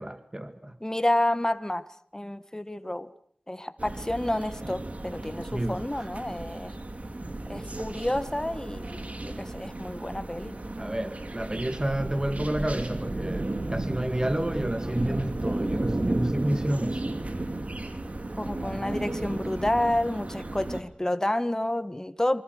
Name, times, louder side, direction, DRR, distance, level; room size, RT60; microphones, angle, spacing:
voice 1, 0.0-0.8 5.5-6.1 10.8-17.1, right 1 dB, 25° right, 1.8 m, -30 dB
voice 2, 0.8-3.1 3.5-6.7 7.5-10.6 18.4-22.4, left 1 dB, 20° left, 1.6 m, -29 dB
sound 1, 3.8-20.8, right 2 dB, 55° right, 2.9 m, -34 dB
27.5 x 25.5 x 6.6 m
wide cardioid pair, 45°, 3 cm